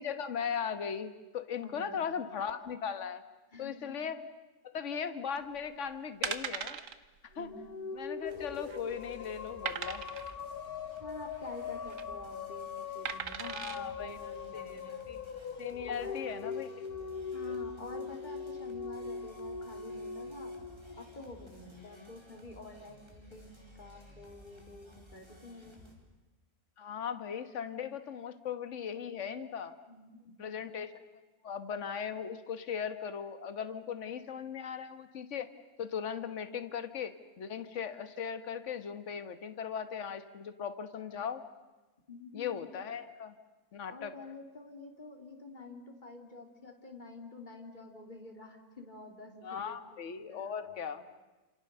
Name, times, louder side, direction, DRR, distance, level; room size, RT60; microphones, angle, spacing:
voice 1, 0.0-3.2 3.6-4.2 4.6-6.8 7.3-7.5 7.9-10.0 13.5-14.2 14.5-14.8 15.1-15.2 15.6-16.7 17.4-17.6 21.8-22.1 26.8-29.7 30.4-30.9 31.4-35.5 35.8-41.4 42.3-43.3 43.7-44.1 49.4-51.1, left 7 dB, 50° left, 10 dB, 1.6 m, -38 dB
voice 2, 1.6-2.1 3.5-3.8 7.3-7.6 11.0-15.0 15.9-16.2 17.3-20.5 21.0-25.8 29.9-30.5 42.1-42.7 43.9-50.8, left 2 dB, 30° left, 2 dB, 3.2 m, -49 dB
sound 1, 5.6-5.8 6.2-7.0 7.3-7.5 7.7-7.8 8.4-8.9 9.7-10.3 11.7-12.0 13.1-13.8 14.4-14.5, right 7 dB, 55° right, 1.4 m, -38 dB
sound 2, 7.4-21.8, left 5 dB, 70° left, 1.7 m, -41 dB
sound 3, 8.2-25.9, equal, 15° right, 4.5 m, -57 dB
30.0 x 27.5 x 6.8 m, 1.1 s
omnidirectional pair, 1.7 m